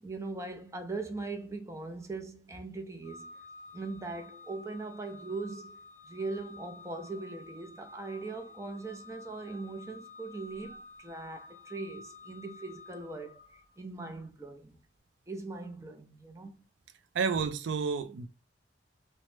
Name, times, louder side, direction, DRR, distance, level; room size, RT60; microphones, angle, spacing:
voice 1, 0.0-3.3 3.7-13.4 13.8-14.8 15.3-16.6, right 3 dB, 15° right, 0.4 m, -40 dB
Organ, 3.0-13.8, left 3 dB, 55° left, 0.8 m, -51 dB
voice 2, 17.1-18.3, right 5 dB, 85° right, 0.4 m, -30 dB
3.0 x 2.1 x 3.1 m
head